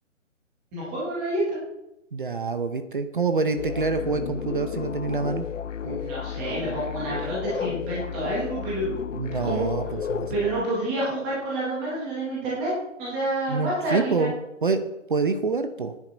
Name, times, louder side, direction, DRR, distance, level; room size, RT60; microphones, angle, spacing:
voice 1, 0.7-1.6 5.8-8.9 9.4-9.7 10.3-12.7 13.0-14.3, right 1 dB, 5° right, -7 dB, 0.8 m, -28 dB
voice 2, 2.1-5.5 9.1-10.3 13.5-14.3 14.6-14.8 15.1-15.9, right 4 dB, 40° right, 9 dB, 0.8 m, -26 dB
sound 1, 3.6-10.6, left 8 dB, 70° left, 0.7 m, -32 dB
15.0 x 9.7 x 3.9 m, 0.90 s
hypercardioid pair, 165°, 38 cm